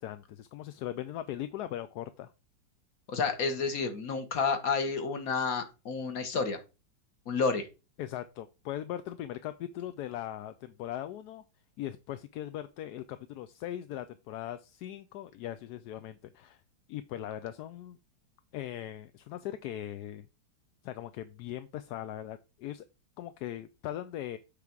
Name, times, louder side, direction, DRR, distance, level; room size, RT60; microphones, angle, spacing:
voice 1, 0.0-2.3 8.0-11.4 11.8-16.6 16.9-18.0 18.5-20.3 20.8-22.9 23.2-24.4, left 12 dB, 70° left, 11 dB, 1.0 m, -39 dB
voice 2, 3.1-6.6 7.2-7.7, left 4 dB, 55° left, 7 dB, 1.7 m, -30 dB
8.3 x 3.5 x 5.9 m, 0.29 s
omnidirectional pair, 1.9 m